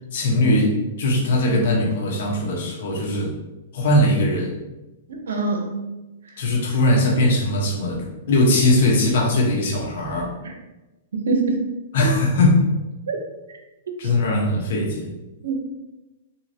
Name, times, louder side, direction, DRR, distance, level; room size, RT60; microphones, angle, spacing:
voice 1, 0.1-3.3 3.7-4.5 6.4-10.3 11.9-12.6 14.0-15.1, left 1 dB, 65° left, -2 dB, 1.1 m, -20 dB
voice 2, 5.1-5.9 10.4-10.5 11.1-11.6 12.0-12.1 13.1-13.2 13.9-14.0 15.4-15.7, right 3 dB, 85° right, 3 dB, 0.7 m, -24 dB
3.7 x 2.9 x 2.8 m, 1.0 s
hypercardioid pair, 140°, 0 cm